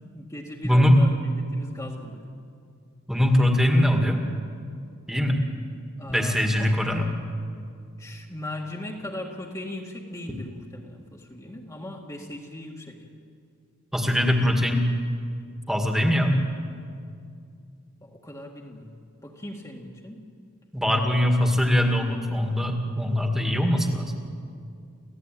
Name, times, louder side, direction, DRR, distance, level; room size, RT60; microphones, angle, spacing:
voice 1, 0.1-1.2 1.5-2.3 6.0-6.8 8.0-13.1 18.0-20.3 20.9-21.3, left 1 dB, 15° left, -1 dB, 1.8 m, -39 dB
voice 2, 0.6-1.0 3.1-4.2 5.1-5.4 6.1-7.1 13.9-14.9 15.7-16.4 20.7-24.2, equal, ahead, 3 dB, 2.0 m, -22 dB
28.5 x 15.5 x 9.2 m, 2.3 s
head